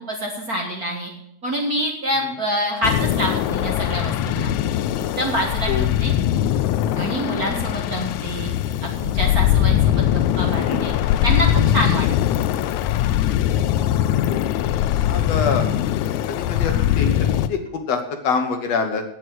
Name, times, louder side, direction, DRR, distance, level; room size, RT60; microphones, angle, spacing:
voice 1, 0.1-1.1 1.4-4.5 5.0-6.1 7.0-8.5 9.0-10.9 11.2-12.1, equal, 40° right, 0 dB, 1.5 m, -26 dB
sound 1, 2.8-17.5, left 11 dB, 85° left, 2.0 m, -21 dB
voice 2, 15.1-15.7 16.3-19.0, left 5 dB, 65° left, 5 dB, 2.2 m, -25 dB
9.3 x 8.7 x 7.8 m, 0.77 s
omnidirectional pair, 3.4 m